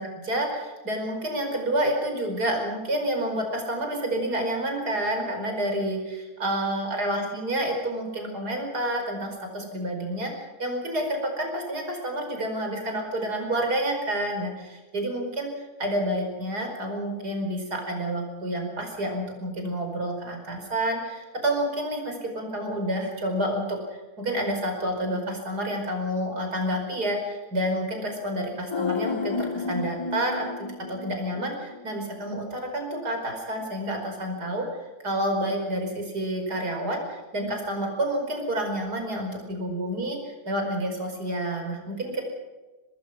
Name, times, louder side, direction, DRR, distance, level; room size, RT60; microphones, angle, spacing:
voice 1, 0.3-23.8 24.2-34.8 35.0-42.2, right 1 dB, 80° right, 3 dB, 5.6 m, -29 dB
sound 1, 28.7-32.0 32.3-32.4, left 4 dB, 30° left, 0.5 m, -32 dB
25.0 x 19.5 x 6.1 m, 1.2 s
omnidirectional pair, 1.7 m